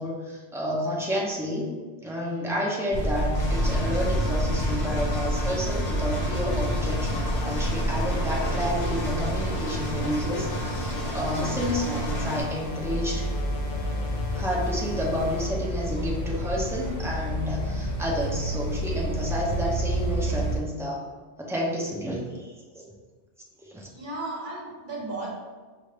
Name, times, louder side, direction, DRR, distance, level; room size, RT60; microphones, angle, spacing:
voice 1, 0.0-1.7 2.0-13.3 14.3-21.0 21.4-22.8 23.6-23.9, equal, 5° right, -4 dB, 0.6 m, -30 dB
sound 1, 2.9-20.6, equal, 35° right, 1.6 m, -29 dB
Engine, 3.3-12.4, equal, 45° left, 1.0 m, -32 dB
sound 2, 6.5-15.5, left 2 dB, 75° left, 0.8 m, -41 dB
voice 2, 23.8-25.3, right 2 dB, 50° right, -3 dB, 1.0 m, -35 dB
5.5 x 2.5 x 3.2 m, 1.4 s
omnidirectional pair, 1.1 m